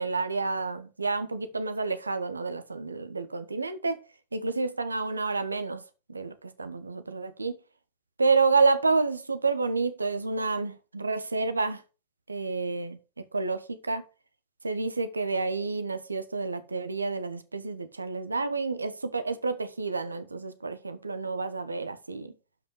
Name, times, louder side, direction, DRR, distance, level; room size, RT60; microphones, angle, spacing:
voice 1, 0.0-4.0 4.3-5.8 6.1-7.6 8.2-11.8 12.3-14.0 14.6-22.3, right 4 dB, 80° right, 1.1 m, -29 dB
12.0 x 5.5 x 4.7 m
figure-of-eight pair, 90°, 0 cm